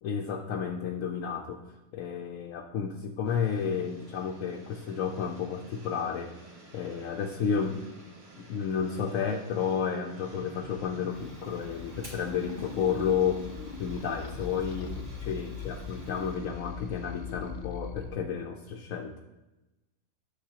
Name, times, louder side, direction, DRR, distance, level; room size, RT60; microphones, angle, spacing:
voice 1, 0.0-1.6 1.9-6.3 6.7-7.8 8.4-13.4 13.8-19.1, left 7 dB, 70° left, 3 dB, 1.0 m, -31 dB
sound 1, 3.2-17.7, right 1 dB, 80° right, 2.2 m, -52 dB
sound 2, 10.2-18.1, left 5 dB, 55° left, 0.5 m, -41 dB
Fire, 11.0-16.4, equal, 45° right, 2.7 m, -53 dB
10.0 x 6.8 x 2.8 m, 1.0 s
omnidirectional pair, 1.5 m